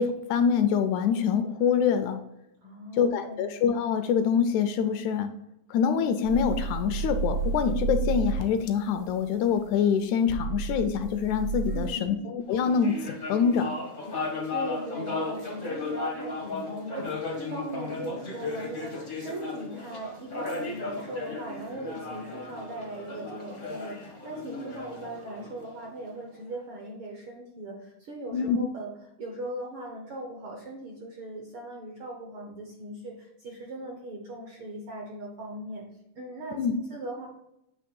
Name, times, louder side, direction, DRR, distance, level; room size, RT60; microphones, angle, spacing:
voice 1, 0.0-2.2 3.0-5.3 5.7-13.7 28.3-28.6 36.5-36.7, left 7 dB, 80° left, 9 dB, 1.8 m, -25 dB
voice 2, 2.6-3.5 11.7-12.2 14.5-35.8 36.1-36.6 36.9-37.3, right 1 dB, 70° right, 0 dB, 1.3 m, -39 dB
sound 1, 6.2-9.6 10.3-11.9, right 4 dB, 90° right, 2.3 m, -31 dB
sound 2, 12.5-26.2, left 3 dB, 55° left, 0.5 m, -35 dB
8.5 x 3.0 x 5.2 m, 0.84 s
omnidirectional pair, 3.5 m